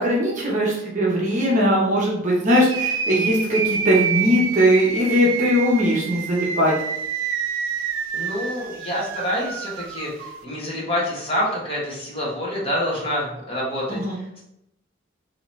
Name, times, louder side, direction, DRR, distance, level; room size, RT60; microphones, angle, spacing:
voice 1, 0.0-6.7 13.9-14.2, equal, 35° right, -4 dB, 0.8 m, -20 dB
sound 1, 2.5-10.4, right 7 dB, 65° right, 0.3 m, -28 dB
voice 2, 8.1-14.4, equal, 25° left, -5 dB, 1.0 m, -27 dB
3.7 x 2.8 x 3.1 m, 0.81 s
head